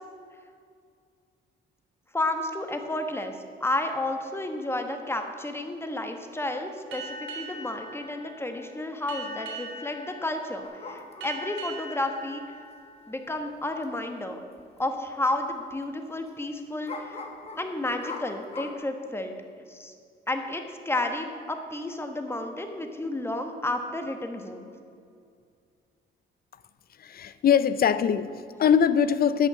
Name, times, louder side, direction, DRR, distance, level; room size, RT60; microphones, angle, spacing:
voice 1, 2.1-3.3 3.6-12.4 13.1-14.4 14.8-17.2 17.6-19.3 19.7-19.9 20.3-24.7, left 2 dB, 10° left, 5 dB, 1.2 m, -31 dB
Boat Water vehicle, 6.9-14.0, right 2 dB, 80° right, 3.1 m, -41 dB
sound 1, 10.6-11.5 13.4-13.5 13.8-13.9 14.6-14.8 15.1-15.2 16.9-18.7, left 4 dB, 30° left, 1.5 m, -40 dB
voice 2, 27.0-29.5, left 8 dB, 50° left, 13 dB, 0.6 m, -22 dB
11.0 x 6.5 x 7.6 m, 2.3 s
cardioid pair, 90°, 20 cm